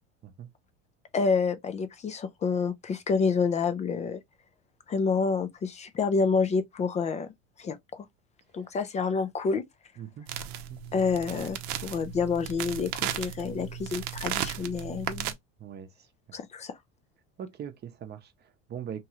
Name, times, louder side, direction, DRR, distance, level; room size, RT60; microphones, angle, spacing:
voice 1, 1.1-4.2 4.9-7.3 7.6-8.1 8.5-9.6 10.9-15.3 16.3-16.8, left 5 dB, 20° left, 0.3 m, -28 dB
sound 1, 10.3-15.3, right 10 dB, 65° right, 0.7 m, -35 dB
voice 2, 10.7-11.0 15.6-16.1 17.4-19.0, right 8 dB, 30° right, 0.7 m, -41 dB
3.0 x 2.2 x 2.9 m
supercardioid pair, 105°, 35 cm